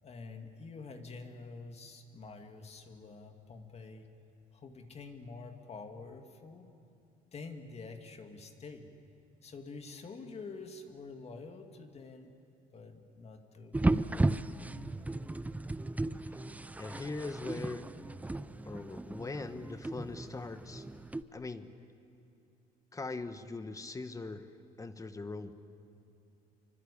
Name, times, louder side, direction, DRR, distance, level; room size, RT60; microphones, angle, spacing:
voice 1, 0.0-4.1 4.5-6.7 7.3-8.9 9.4-12.3 12.7-13.8 14.1-14.4, left 4 dB, 40° left, 5 dB, 2.3 m, -47 dB
sound 1, 13.7-21.2, right 2 dB, 10° right, 0.6 m, -35 dB
voice 2, 16.8-17.9 18.6-20.9 21.3-21.7 22.9-24.5 24.8-25.5, left 3 dB, 20° left, 10 dB, 1.3 m, -41 dB
26.0 x 24.5 x 8.5 m, 2.6 s
cardioid pair, 110°, 17 cm